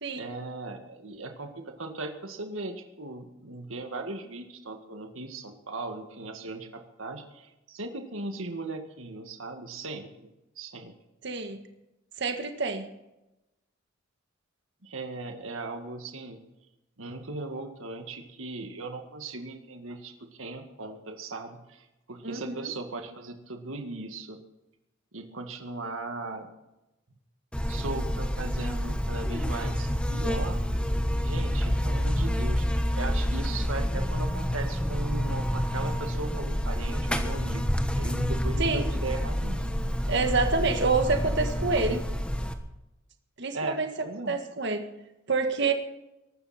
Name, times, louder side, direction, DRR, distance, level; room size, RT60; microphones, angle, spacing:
voice 1, 0.1-10.3 10.6-10.9 14.8-16.4 17.0-24.4 25.1-26.5 27.6-30.6 31.2-32.7 32.9-39.8 43.5-44.4, right 2 dB, 85° right, 5 dB, 1.9 m, -38 dB
voice 2, 11.2-11.6 12.2-12.9 22.2-22.7 38.6-38.8 40.1-42.0 43.4-43.9 44.3-44.8 45.3-45.7, right 4 dB, 60° right, 5 dB, 1.7 m, -27 dB
Buzz, 27.5-42.5, equal, 5° left, 1.3 m, -28 dB
22.5 x 12.5 x 4.4 m, 0.95 s
head